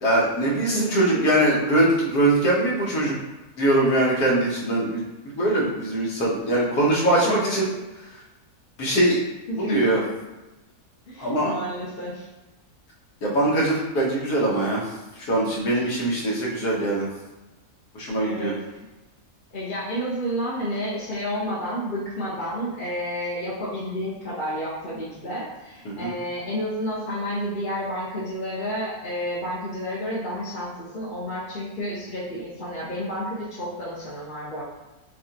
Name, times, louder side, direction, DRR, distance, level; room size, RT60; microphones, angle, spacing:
voice 1, 0.0-3.1 3.6-5.0 5.3-7.7 8.8-9.2 9.5-10.0 11.2-11.5 13.2-14.8 15.2-17.1 17.9-18.5 25.8-26.1, right 1 dB, 75° left, -4 dB, 1.6 m, -22 dB
voice 2, 0.7-1.2 6.6-6.7 7.2-7.6 9.5-10.1 11.1-12.3 18.2-18.9 19.5-34.6, equal, 40° left, -9 dB, 1.0 m, -30 dB
6.3 x 2.5 x 2.8 m, 1.1 s
omnidirectional pair, 1.6 m